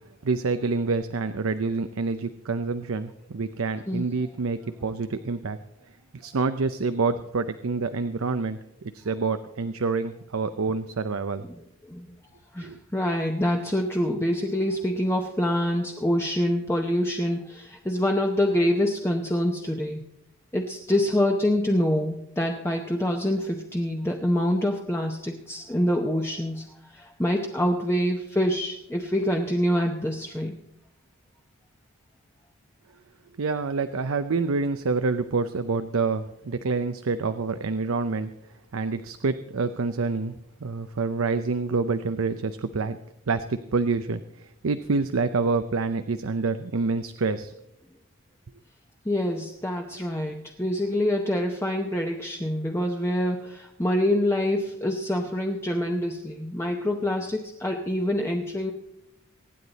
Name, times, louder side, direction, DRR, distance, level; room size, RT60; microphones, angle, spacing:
voice 1, 0.2-5.6 6.1-11.5 12.6-12.8 33.4-38.3 38.7-40.3 40.6-43.0 43.3-47.5, right 4 dB, 75° right, 10 dB, 0.6 m, -27 dB
voice 2, 12.5-20.0 20.5-30.6 49.0-58.7, left 1 dB, 10° left, 1 dB, 0.7 m, -26 dB
24.0 x 9.5 x 4.0 m, 0.82 s
head